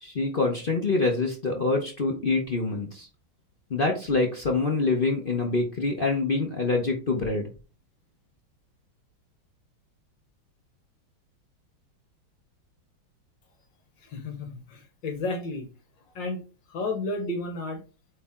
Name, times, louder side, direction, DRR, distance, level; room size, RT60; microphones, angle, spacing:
voice 1, 0.0-3.1 3.7-7.5, left 3 dB, 40° left, 1 dB, 0.8 m, -25 dB
voice 2, 14.0-15.7 16.2-16.4 16.7-17.8, left 2 dB, 65° left, 5 dB, 1.8 m, -32 dB
8.3 x 3.3 x 3.6 m, 0.34 s
omnidirectional pair, 2.2 m